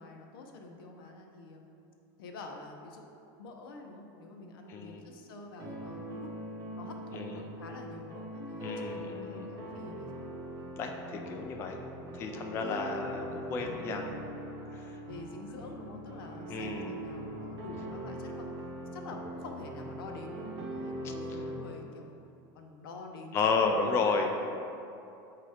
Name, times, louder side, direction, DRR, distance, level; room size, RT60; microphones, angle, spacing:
voice 1, 0.0-1.6 2.2-6.3 6.7-10.3 11.1-11.5 12.6-12.9 13.2-13.8 15.0-18.5 18.9-22.2 22.5-24.3, left 3 dB, 85° left, 2 dB, 0.8 m, -47 dB
voice 2, 4.7-5.0 7.1-7.4 8.6-9.5 10.8-14.1 14.7-15.0 16.5-17.0 21.0-21.5 23.3-24.3, left 4 dB, 20° left, 2 dB, 0.3 m, -32 dB
sound 1, 5.6-21.6, right 1 dB, 30° right, 0.8 m, -41 dB
7.4 x 2.9 x 4.8 m, 2.7 s
supercardioid pair, 170°, 12 cm